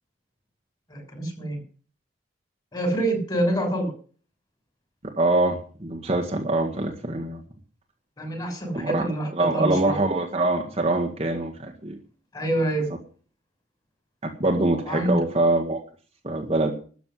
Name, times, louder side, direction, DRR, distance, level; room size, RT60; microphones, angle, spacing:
voice 1, 0.9-1.6 2.7-3.9 8.2-10.0 12.3-12.9 14.8-15.2, right 1 dB, 20° left, 3 dB, 6.4 m, -26 dB
voice 2, 5.2-7.4 8.7-9.0 9.3-12.0 14.2-15.8 16.2-16.7, right 2 dB, 30° right, 2 dB, 1.8 m, -24 dB
13.5 x 6.9 x 9.8 m, 0.41 s
head